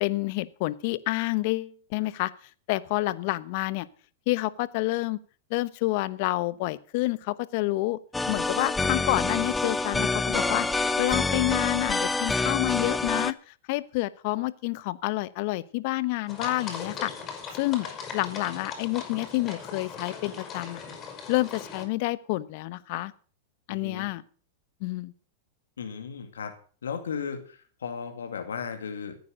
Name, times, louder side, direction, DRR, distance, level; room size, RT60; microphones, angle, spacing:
voice 1, 0.0-2.3 2.7-3.9 4.3-5.2 5.5-8.0 8.3-10.7 11.0-13.3 13.7-17.1 17.5-17.9 18.1-20.8 21.3-23.1 23.7-24.2 24.8-25.1, left 19 dB, 55° left, 17 dB, 1.0 m, -28 dB
sound 1, 8.1-13.3, left 3 dB, 10° left, 0.9 m, -27 dB
sound 2, 16.3-21.8, left 5 dB, 30° left, 6.1 m, -39 dB
voice 2, 23.7-24.1 25.8-26.5 26.8-29.2, left 6 dB, 85° left, 6 dB, 2.3 m, -36 dB
15.0 x 9.4 x 6.5 m, 0.42 s
hypercardioid pair, 115°, 0 cm